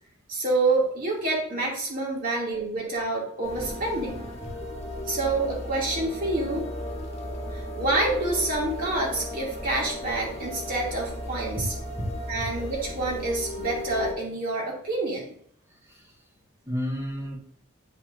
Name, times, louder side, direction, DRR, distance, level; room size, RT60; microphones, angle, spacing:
voice 1, 0.3-4.2 5.1-6.6 7.5-11.7 12.3-15.3, right 2 dB, 45° right, -3 dB, 2.5 m, -27 dB
sound 1, 3.4-14.1, left 1 dB, 30° left, 1.4 m, -35 dB
voice 2, 4.4-4.8 11.6-11.7 12.0-12.5 15.7-16.3 16.7-17.4, equal, 15° right, -2 dB, 1.7 m, -33 dB
9.2 x 5.4 x 2.6 m, 0.63 s
head